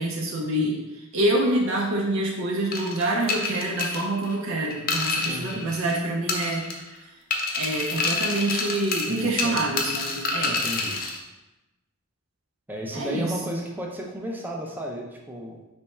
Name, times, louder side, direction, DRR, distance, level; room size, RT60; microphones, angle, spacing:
voice 1, 0.0-6.7 7.5-10.6 12.9-13.5, right 1 dB, 70° right, -2 dB, 0.6 m, -26 dB
sound 1, 2.7-6.0 6.3-7.0 7.3-11.2, left 3 dB, 45° left, 0.5 m, -28 dB
voice 2, 5.2-5.7 9.1-9.6 10.5-11.0 12.7-15.6, equal, 10° right, -1 dB, 0.5 m, -34 dB
3.4 x 3.1 x 4.3 m, 1.0 s
head